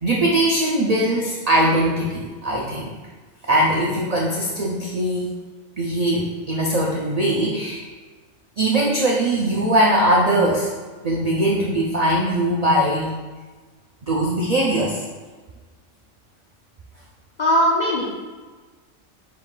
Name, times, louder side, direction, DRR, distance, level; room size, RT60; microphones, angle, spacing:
voice 1, 0.0-2.9 3.5-5.3 5.8-7.9 8.6-10.7 11.0-13.1 14.1-15.0, right 1 dB, 75° right, -3 dB, 0.3 m, -20 dB
voice 2, 17.4-18.1, equal, 60° left, -4 dB, 0.4 m, -19 dB
5.7 x 3.7 x 2.3 m, 1.3 s
omnidirectional pair, 1.3 m